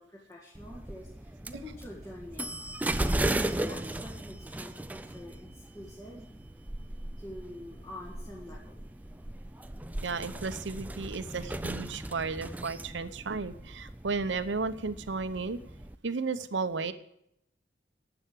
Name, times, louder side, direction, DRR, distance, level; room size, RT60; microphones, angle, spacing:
voice 1, 0.0-2.6 3.0-5.5 5.7-6.3 7.2-8.8, left 1 dB, 15° left, -4 dB, 1.9 m, -46 dB
sound 1, 0.6-16.0, right 1 dB, 10° right, 0.4 m, -37 dB
voice 2, 10.0-15.6 16.0-16.9, right 4 dB, 85° right, 12 dB, 0.8 m, -33 dB
11.5 x 7.9 x 7.4 m, 0.79 s
head